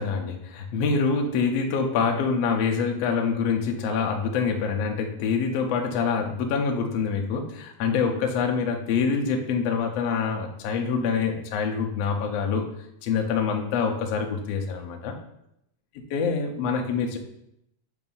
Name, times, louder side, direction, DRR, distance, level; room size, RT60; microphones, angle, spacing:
voice 1, 0.0-12.6 13.0-15.1 16.1-17.2, left 5 dB, 75° left, 2 dB, 1.6 m, -25 dB
7.1 x 2.6 x 5.3 m, 0.77 s
omnidirectional pair, 3.5 m